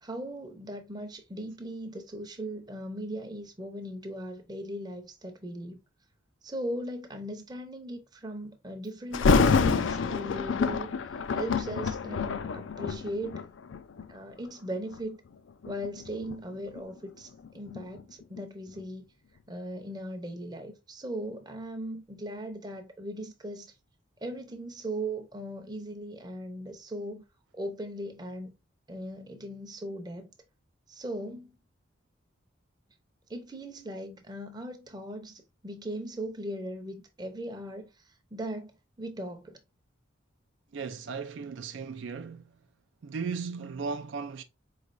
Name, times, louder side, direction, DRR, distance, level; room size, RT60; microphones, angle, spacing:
voice 1, 0.0-5.8 6.4-13.4 14.1-15.2 15.6-19.0 19.5-23.7 24.2-27.2 27.5-28.5 28.9-30.3 30.9-31.6 33.3-39.6, right 1 dB, 20° right, 0.6 m, -38 dB
Thunder, 9.1-14.1 14.8-15.0 15.6-18.5 18.8-18.9, left 4 dB, 75° left, 0.4 m, -27 dB
voice 2, 40.7-42.5 43.0-44.4, right 5 dB, 70° right, 0.4 m, -36 dB
4.6 x 3.2 x 2.5 m
head